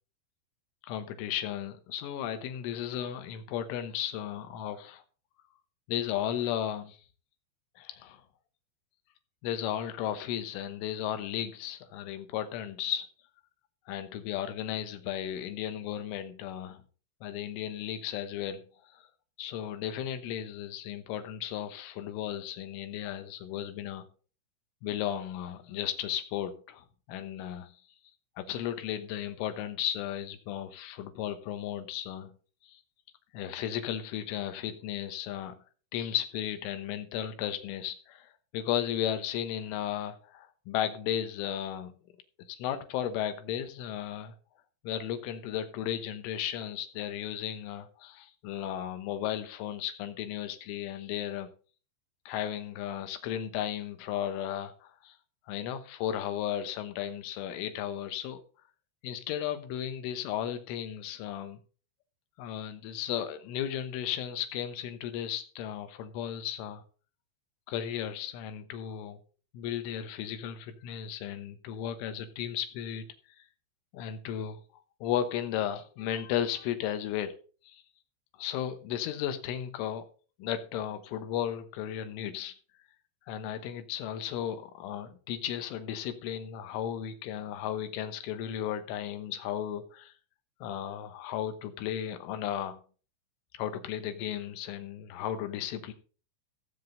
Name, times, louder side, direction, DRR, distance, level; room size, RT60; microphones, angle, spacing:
voice 1, 0.9-5.0 5.9-7.0 7.8-8.2 9.4-13.1 13.9-16.8 17.2-18.6 18.9-19.0 19.4-24.1 24.8-27.8 28.4-32.3 32.6-32.8 33.3-35.6 35.9-41.9 42.5-44.3 44.8-51.5 52.3-55.2 55.5-58.4 59.0-61.6 62.4-66.8 67.7-69.2 69.5-73.1 73.9-74.6 75.0-77.4 77.7-77.8 78.4-80.1 80.4-82.5 83.3-90.1 90.6-92.8 93.5-95.9, left 10 dB, 80° left, 3.7 m, -35 dB
15.5 x 7.8 x 3.9 m
omnidirectional pair, 5.6 m